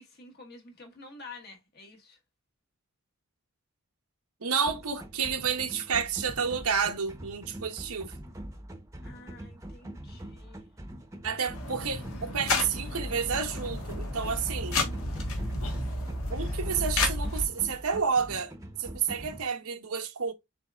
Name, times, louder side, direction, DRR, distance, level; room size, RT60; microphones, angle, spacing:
voice 1, 0.0-2.2 9.0-10.7, left 3 dB, 45° left, 1.3 m, -49 dB
voice 2, 4.4-8.1 11.2-14.8 16.3-18.5 18.8-20.3, right 6 dB, 90° right, 1.0 m, -30 dB
sound 1, 4.7-19.4, right 1 dB, 15° right, 0.8 m, -44 dB
sound 2, 11.5-17.5, left 2 dB, 75° left, 1.4 m, -31 dB
6.6 x 3.4 x 2.3 m
head